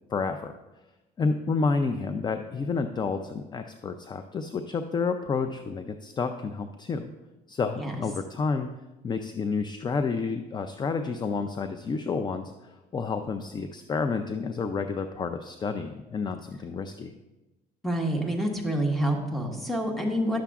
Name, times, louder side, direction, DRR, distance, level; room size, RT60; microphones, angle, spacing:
voice 1, 0.1-0.6 1.2-7.1 7.5-8.7 9.0-17.1, left 4 dB, 25° left, 7 dB, 0.4 m, -30 dB
voice 2, 17.8-20.4, right 1 dB, ahead, 1 dB, 1.4 m, -27 dB
11.0 x 6.9 x 2.4 m, 1.0 s
cardioid pair, 110°, 17 cm